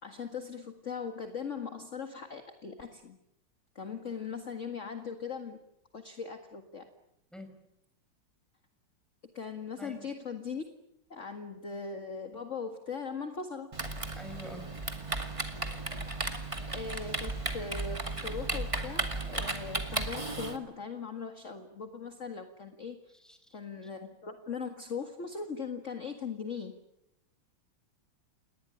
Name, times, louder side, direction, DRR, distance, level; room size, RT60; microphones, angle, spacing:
voice 1, 0.0-3.2 3.8-5.6 5.9-6.9 9.3-10.6 11.1-13.7 16.7-23.0 23.5-26.8, left 5 dB, 40° left, 6 dB, 2.0 m, -39 dB
Typing, 13.7-20.6, right 2 dB, 15° right, 2.1 m, -35 dB
voice 2, 14.1-14.8 23.1-23.6, left 1 dB, ahead, 6 dB, 5.1 m, -46 dB
28.5 x 20.0 x 9.9 m, 0.85 s
omnidirectional pair, 2.2 m